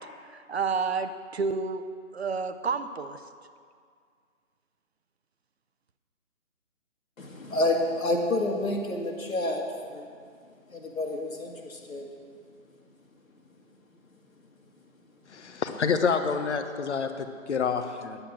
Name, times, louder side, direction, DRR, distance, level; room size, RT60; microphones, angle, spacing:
voice 1, 0.3-1.8 2.1-3.2, right 5 dB, 50° right, 10 dB, 0.7 m, -30 dB
voice 2, 7.2-10.1 10.7-12.1, left 1 dB, 80° left, 2 dB, 2.1 m, -29 dB
voice 3, 15.3-18.2, left 5 dB, 55° left, 8 dB, 1.1 m, -28 dB
9.8 x 8.0 x 7.2 m, 2.1 s
figure-of-eight pair, 150°, 40 cm